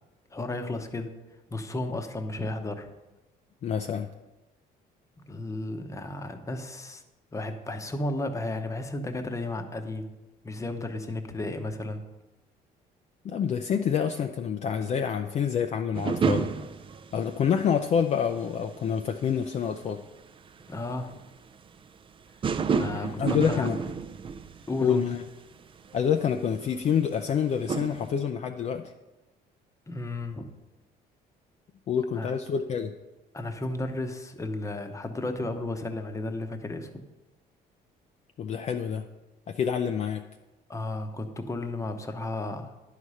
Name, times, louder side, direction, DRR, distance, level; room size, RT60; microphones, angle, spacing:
voice 1, 0.3-1.1 1.5-2.9 5.3-7.0 7.3-10.1 10.4-12.0 20.7-21.1 22.7-23.7 24.7-25.0 29.9-30.5 32.1-32.3 33.3-36.9 40.7-42.7, left 2 dB, 20° left, 6 dB, 0.9 m, -33 dB
voice 2, 3.6-4.1 13.2-16.5 17.1-20.0 22.9-23.8 24.8-25.2 25.9-28.9 31.9-32.9 38.4-39.0 39.5-40.2, left 7 dB, 40° left, 5 dB, 0.4 m, -27 dB
sound 1, 15.9-17.8 18.1-18.5 19.3-19.5 19.7-19.8 20.1-20.2 20.6-20.7 20.9-21.0 22.4-24.9 25.2-25.4 25.7-27.3 27.7-28.1, right 5 dB, 30° right, 0.5 m, -30 dB
10.5 x 4.9 x 5.5 m, 1.1 s
cardioid pair, 110°, 17 cm